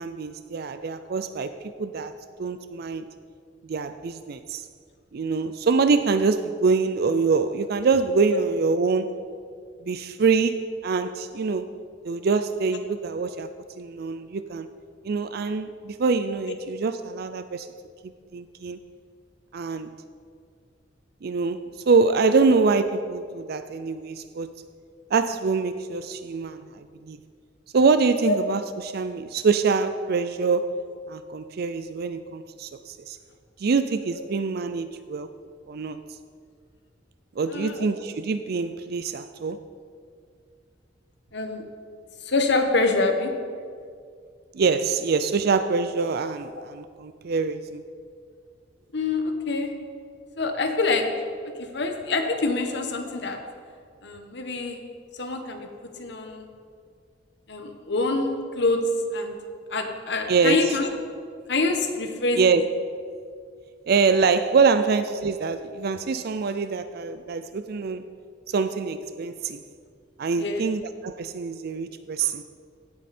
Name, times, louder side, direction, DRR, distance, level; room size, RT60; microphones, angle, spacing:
voice 1, 0.0-1.5 1.8-2.1 2.4-3.1 3.7-4.6 5.1-9.2 9.8-11.7 12.0-13.5 13.8-14.7 15.0-17.7 18.3-18.8 19.5-20.0 21.2-24.6 25.1-27.2 27.7-30.8 31.1-33.2 33.6-35.3 35.7-36.0 37.4-39.7 44.5-47.8 60.3-60.9 62.3-62.6 63.9-68.0 68.5-69.6 70.2-72.4, right 4 dB, 55° right, 11 dB, 0.4 m, -25 dB
voice 2, 37.5-37.9 41.3-41.6 42.2-43.3 46.6-46.7 48.9-49.7 50.4-51.1 51.6-53.4 54.0-54.8 55.1-55.7 56.0-56.5 57.5-58.8 59.1-59.4 59.7-60.9 61.5-62.4 70.4-70.7, left 3 dB, 65° left, 5 dB, 1.3 m, -26 dB
16.5 x 8.5 x 4.3 m, 2.2 s
head